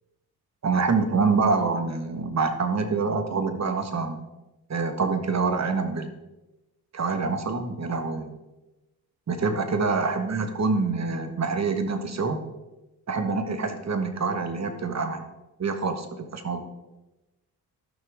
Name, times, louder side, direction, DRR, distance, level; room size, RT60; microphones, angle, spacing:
voice 1, 0.6-4.2 4.7-6.1 6.9-8.4 9.3-12.4 13.1-15.2 15.6-16.6, right 4 dB, 40° right, 7 dB, 1.4 m, -26 dB
13.5 x 6.1 x 3.6 m, 1.0 s
supercardioid pair, 55°, 39 cm